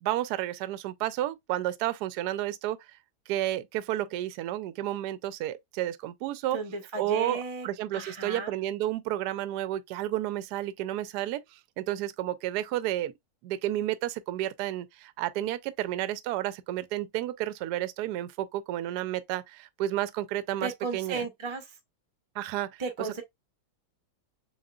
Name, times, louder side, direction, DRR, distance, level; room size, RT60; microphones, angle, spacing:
voice 1, 0.0-2.8 3.3-6.6 7.0-13.1 13.4-21.2 22.4-23.1, right 13 dB, 70° right, 1.0 m, -31 dB
voice 2, 6.5-7.7 7.9-8.5 20.6-21.8 22.8-23.2, right 4 dB, 30° right, 0.5 m, -34 dB
7.1 x 2.7 x 2.3 m
omnidirectional pair, 2.0 m